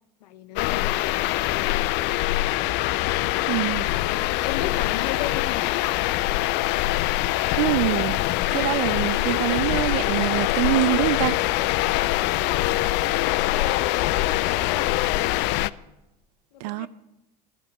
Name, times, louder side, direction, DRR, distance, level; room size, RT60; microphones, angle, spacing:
voice 1, 0.2-0.9 3.9-6.1 12.2-15.5 16.5-16.9, left 11 dB, 85° left, 0.7 m, -34 dB
sound 1, 0.6-15.7, left 17 dB, 55° left, 0.4 m, -24 dB
voice 2, 3.5-3.9 7.6-8.2 8.5-11.4 16.6-16.9, right 17 dB, 75° right, 0.5 m, -24 dB
11.5 x 9.8 x 5.3 m
hypercardioid pair, 85°, 21 cm